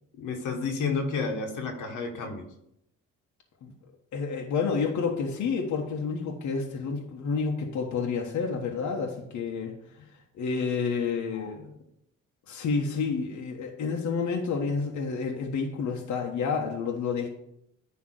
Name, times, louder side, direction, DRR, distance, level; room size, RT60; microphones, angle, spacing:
voice 1, 0.2-2.5 11.3-11.7, left 4 dB, 90° left, 3 dB, 1.6 m, -31 dB
voice 2, 4.1-9.8 10.4-11.6 12.5-17.3, left 5 dB, 70° left, 1 dB, 1.3 m, -29 dB
9.9 x 3.3 x 6.4 m, 0.76 s
cardioid pair, 90°, 30 cm